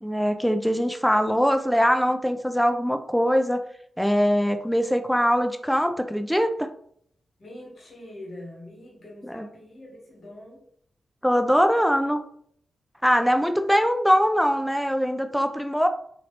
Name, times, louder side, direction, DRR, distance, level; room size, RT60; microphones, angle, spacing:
voice 1, 0.0-3.6 4.0-6.7 9.2-9.5 11.2-12.2 13.0-15.9, equal, ahead, 7 dB, 0.3 m, -22 dB
voice 2, 7.4-10.6, left 1 dB, 60° left, -3 dB, 1.4 m, -43 dB
2.9 x 2.6 x 3.1 m, 0.66 s
wide cardioid pair, 115°, 0 cm